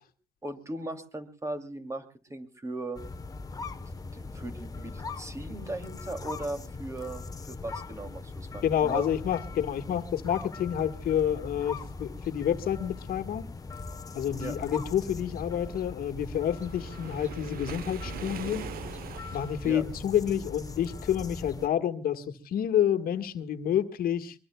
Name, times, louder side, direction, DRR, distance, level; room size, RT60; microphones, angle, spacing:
voice 1, 0.4-2.0 2.3-3.0 4.1-9.1 14.1-14.6 19.6-19.8, right 2 dB, 15° right, 2.8 m, -38 dB
sound 1, 2.9-21.7, left 3 dB, 20° left, 1.2 m, -40 dB
voice 2, 8.6-13.5 14.1-18.7 19.3-24.3, left 10 dB, 60° left, 1.7 m, -29 dB
Waves surf, 16.5-19.8, right 9 dB, 60° right, 1.0 m, -42 dB
23.0 x 23.0 x 2.3 m
cardioid pair, 110°, 17 cm